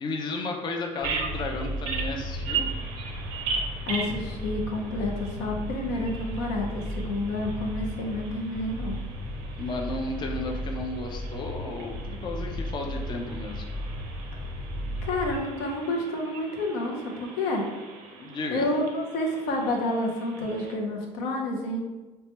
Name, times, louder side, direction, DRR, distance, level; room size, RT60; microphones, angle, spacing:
voice 1, 0.0-2.7 9.6-13.7 18.2-18.7, left 2 dB, 35° left, 2 dB, 0.4 m, -33 dB
sound 1, 1.0-15.4, equal, ahead, 0.8 m, -35 dB
Bird vocalization bird call bird song, 1.0-20.8, right 5 dB, 90° right, 0.5 m, -39 dB
voice 2, 3.9-9.0 15.0-17.7 18.5-21.8, left 1 dB, 85° left, 1 dB, 0.6 m, -29 dB
3.1 x 2.2 x 2.8 m, 1.2 s
supercardioid pair, 90°, 13 cm